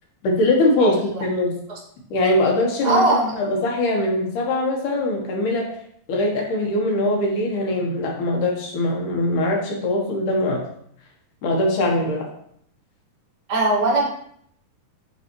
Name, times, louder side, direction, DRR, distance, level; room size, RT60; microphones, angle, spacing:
voice 1, 0.2-1.6 2.1-5.7 6.1-10.6 11.4-12.3, left 1 dB, 65° left, 0 dB, 2.6 m, -22 dB
voice 2, 2.8-3.3 13.5-14.1, right 2 dB, 35° right, -5 dB, 1.9 m, -20 dB
9.5 x 4.3 x 3.0 m, 0.67 s
omnidirectional pair, 4.2 m